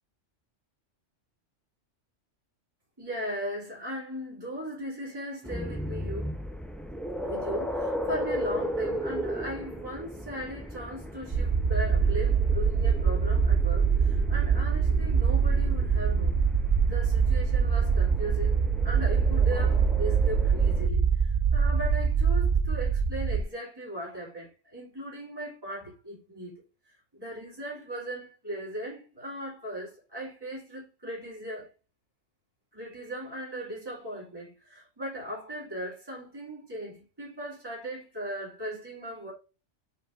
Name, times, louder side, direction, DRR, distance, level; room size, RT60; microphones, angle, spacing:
voice 1, 3.0-6.4 7.2-16.4 16.8-31.7 32.7-39.3, right 1 dB, 20° right, 2.8 m, -38 dB
sound 1, 5.4-20.9, equal, ahead, 0.4 m, -36 dB
sound 2, 11.3-23.4, right 6 dB, 45° right, 0.9 m, -24 dB
5.4 x 4.8 x 3.6 m
omnidirectional pair, 1.2 m